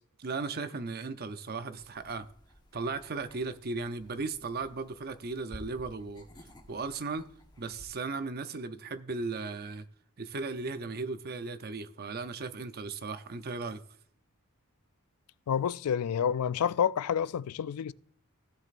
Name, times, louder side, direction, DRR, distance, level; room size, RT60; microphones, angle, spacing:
voice 1, 0.2-2.3 2.7-6.3 6.7-7.3 7.6-9.9 10.2-13.8, right 3 dB, 45° right, 0.6 m, -36 dB
sound 1, 1.8-7.8, equal, 20° left, 1.2 m, -54 dB
voice 2, 15.5-17.9, left 8 dB, 80° left, 0.4 m, -29 dB
16.5 x 7.4 x 2.5 m
head